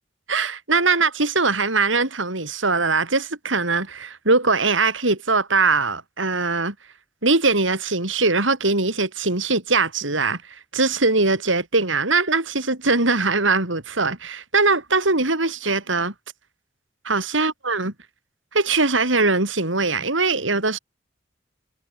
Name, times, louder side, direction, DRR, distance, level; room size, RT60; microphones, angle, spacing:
voice 1, 0.3-6.7 7.2-16.1 17.0-17.9 18.5-20.8, right 3 dB, 85° right, 4.5 m, -21 dB
head